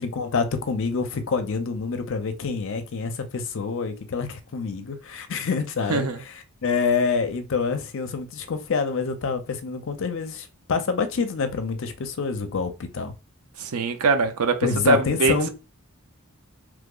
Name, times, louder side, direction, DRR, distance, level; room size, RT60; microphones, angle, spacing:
voice 1, 0.0-13.1 14.6-15.5, left 5 dB, 60° left, 0.5 m, -27 dB
voice 2, 5.9-6.2 13.6-15.4, right 3 dB, 80° right, 0.6 m, -22 dB
3.0 x 2.0 x 3.7 m
head